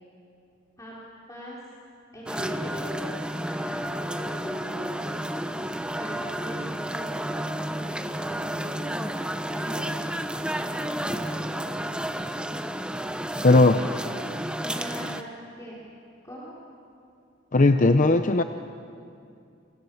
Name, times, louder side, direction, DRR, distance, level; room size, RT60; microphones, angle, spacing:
voice 1, 0.8-1.6 2.1-3.1 3.4-5.2 6.0-9.9 10.5-12.2 13.7-15.3 15.6-15.8 16.2-16.5, equal, 15° left, -5 dB, 4.5 m, -42 dB
sound 1, 2.3-15.2, right 1 dB, 5° right, 1.0 m, -31 dB
voice 2, 13.4-13.8 17.5-18.4, left 2 dB, 45° left, 8 dB, 0.7 m, -17 dB
29.5 x 28.0 x 7.2 m, 2.5 s
head